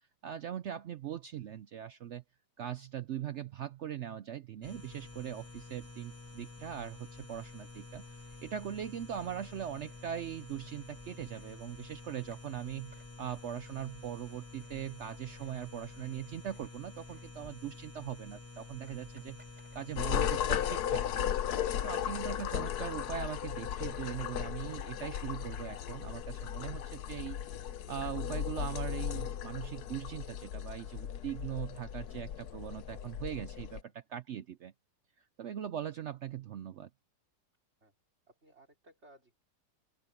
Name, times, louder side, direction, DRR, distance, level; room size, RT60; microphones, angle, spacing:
voice 1, 0.2-2.2 2.6-19.4 19.7-21.3 21.8-27.4 27.9-34.7 35.4-36.9, right 10 dB, 80° right, 0.6 m, -41 dB
sound 1, 4.6-20.2, left 3 dB, 15° left, 0.5 m, -50 dB
sound 2, 9.8-17.9 18.2-18.3 18.6-20.4 20.7-24.4 24.8-24.9 25.1-26.6, equal, 5° right, 3.7 m, -67 dB
sound 3, 20.0-33.8, left 10 dB, 65° left, 1.2 m, -36 dB
voice 2, 38.3-39.4, right 1 dB, 35° right, 5.2 m, -62 dB
open air
omnidirectional pair, 1.9 m